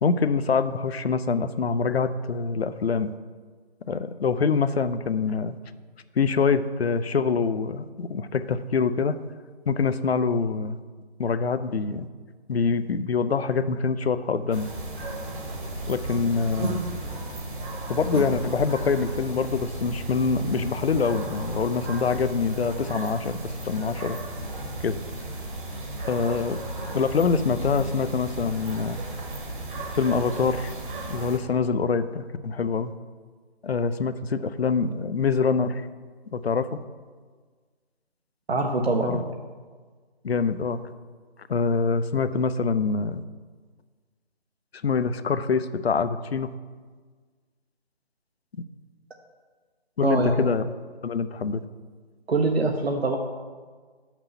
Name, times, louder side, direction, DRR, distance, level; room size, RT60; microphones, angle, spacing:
voice 1, 0.0-3.1 3.9-5.6 6.2-9.2 9.7-10.8 11.2-12.1 12.5-14.7 15.9-16.8 17.9-24.2 24.8-25.0 26.1-26.6 26.9-29.0 29.9-30.7 31.1-32.9 33.6-35.9 36.3-36.8 39.0-39.2 40.2-40.8 41.5-43.2 44.8-46.5 50.0-50.6 51.0-51.6, left 5 dB, 70° left, 12 dB, 0.6 m, -25 dB
sound 1, 14.5-31.4, right 2 dB, 50° right, 1.5 m, -34 dB
voice 2, 38.5-39.3 50.0-50.4 52.3-53.2, right 2 dB, 70° right, 2 dB, 1.0 m, -23 dB
6.1 x 5.5 x 7.0 m, 1.5 s
figure-of-eight pair, 155°, 32 cm